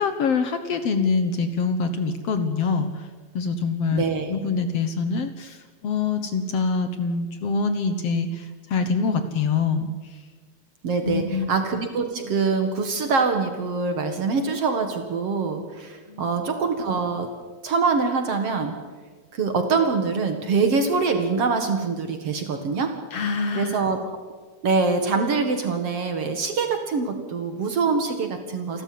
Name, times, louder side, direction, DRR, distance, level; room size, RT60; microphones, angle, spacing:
voice 1, 0.0-2.9 3.3-4.0 4.3-5.6 5.8-9.9 11.0-11.5 16.1-16.2 23.1-23.8, left 4 dB, 60° left, 9 dB, 2.2 m, -25 dB
voice 2, 3.9-4.4 10.8-17.3 17.6-18.8 19.3-22.9 23.5-24.0 24.6-28.8, right 4 dB, 55° right, 6 dB, 2.6 m, -24 dB
29.5 x 13.0 x 9.5 m, 1.4 s
omnidirectional pair, 3.3 m